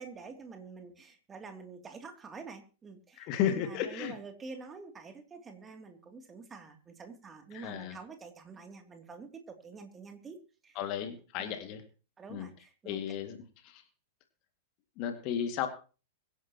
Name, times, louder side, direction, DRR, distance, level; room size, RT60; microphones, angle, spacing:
voice 1, 0.0-10.4 10.6-10.8 11.4-11.6 12.2-13.0, right 4 dB, 20° right, 4 dB, 2.9 m, -47 dB
voice 2, 3.2-4.1 7.5-8.0 10.8-11.8 12.3-12.5 12.8-13.4 13.6-13.8 15.0-15.7, left 9 dB, 40° left, 6 dB, 2.2 m, -33 dB
24.0 x 10.5 x 3.0 m, 0.36 s
figure-of-eight pair, 100°, 0 cm